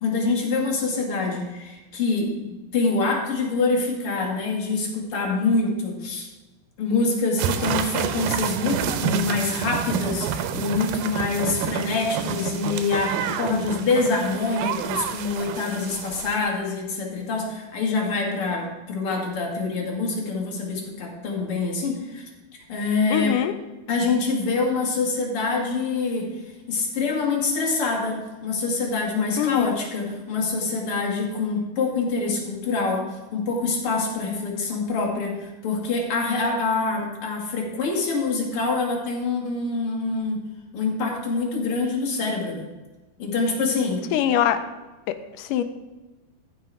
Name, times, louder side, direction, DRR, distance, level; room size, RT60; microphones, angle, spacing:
voice 1, 0.0-6.3 6.8-22.2 22.5-23.4 23.9-26.3 26.7-40.4 40.7-42.6 43.2-44.0, left 3 dB, 45° left, 0 dB, 2.5 m, -25 dB
sound 1, 7.4-16.4, right 8 dB, 80° right, 2.4 m, -28 dB
voice 2, 23.1-23.5 29.4-29.8 44.1-44.6 45.1-45.6, left 10 dB, 80° left, 10 dB, 2.0 m, -23 dB
14.5 x 5.7 x 4.9 m, 1.1 s
omnidirectional pair, 4.2 m